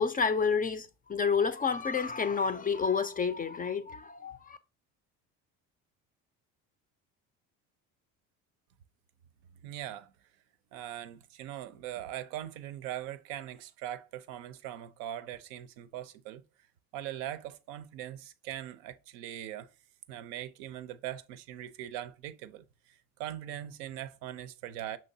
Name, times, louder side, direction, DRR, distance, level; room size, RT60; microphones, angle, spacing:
voice 1, 0.0-4.6, left 5 dB, 25° left, 0.4 m, -29 dB
voice 2, 9.6-10.1 10.7-16.4 16.9-19.7 20.1-22.6 23.2-25.0, right 12 dB, 80° right, 0.5 m, -41 dB
5.5 x 3.1 x 2.6 m
supercardioid pair, 75°, 39 cm